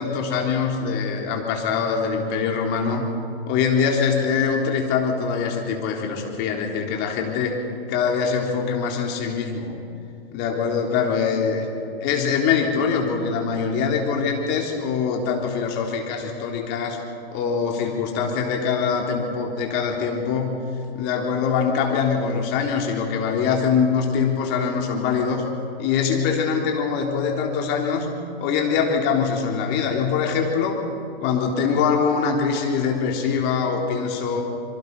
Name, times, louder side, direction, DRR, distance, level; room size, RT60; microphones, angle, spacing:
voice 1, 0.0-3.1 3.5-7.6 7.9-9.7 10.3-11.7 12.0-17.0 17.3-20.6 20.9-25.4 25.8-28.1 28.4-30.8 31.2-34.4, left 6 dB, 35° left, 1 dB, 3.5 m, -23 dB
25.5 x 23.0 x 5.4 m, 2.6 s
hypercardioid pair, 120°, 30 cm